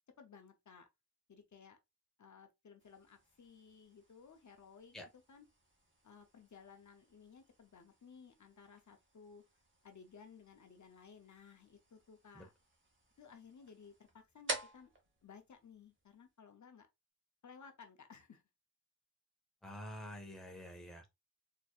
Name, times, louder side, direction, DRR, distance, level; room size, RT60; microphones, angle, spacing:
voice 1, 0.2-0.9 1.3-1.8 2.2-5.0 5.3-5.5 6.0-9.4 9.8-12.5 13.2-14.9 15.2-16.9 17.4-18.4, left 6 dB, 65° left, 0.8 m, -58 dB
sound 1, 2.8-16.4, right 2 dB, 40° right, 1.3 m, -51 dB
voice 2, 19.6-21.1, equal, ahead, 1.0 m, -48 dB
4.3 x 3.0 x 2.4 m
wide cardioid pair, 120°, 32 cm